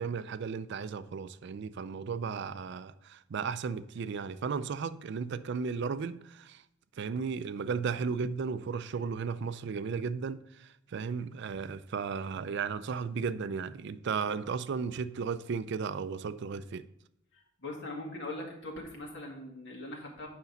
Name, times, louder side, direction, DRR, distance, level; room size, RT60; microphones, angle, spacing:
voice 1, 0.0-6.6 7.0-16.9, right 5 dB, 60° right, 0.4 m, -35 dB
voice 2, 17.6-20.3, left 2 dB, 65° left, 2.0 m, -41 dB
8.2 x 5.3 x 4.0 m
head